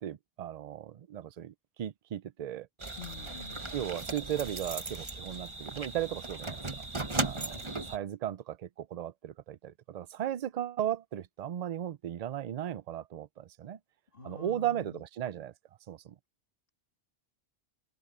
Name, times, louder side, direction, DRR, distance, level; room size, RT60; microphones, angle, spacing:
voice 1, 0.0-2.7 3.7-6.9 7.2-7.6 7.9-13.8 14.2-15.5 15.9-16.1, right 11 dB, 50° right, 0.5 m, -36 dB
sound 1, 2.8-8.0, right 3 dB, 30° right, 1.3 m, -37 dB
voice 2, 3.0-3.8 7.3-7.9 14.1-15.0, left 6 dB, 55° left, 2.2 m, -48 dB
open air
omnidirectional pair, 1.1 m